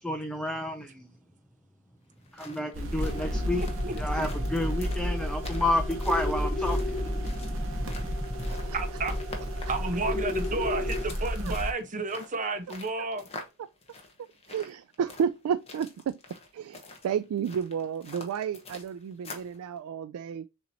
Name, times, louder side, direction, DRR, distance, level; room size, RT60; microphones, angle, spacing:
voice 1, 0.0-1.1 2.3-3.6 4.0-7.0, left 1 dB, 5° left, 0.5 m, -30 dB
sound 1, 2.1-19.6, left 3 dB, 30° left, 1.0 m, -47 dB
sound 2, 2.7-11.7, equal, 65° right, 1.1 m, -32 dB
sound 3, 3.0-11.0, left 2 dB, 45° left, 2.4 m, -37 dB
voice 2, 3.3-3.9 8.7-9.2 9.4-13.3, right 3 dB, 35° right, 0.9 m, -32 dB
voice 3, 14.5-16.2 16.5-20.5, right 7 dB, 85° right, 0.3 m, -31 dB
6.8 x 2.9 x 2.7 m
head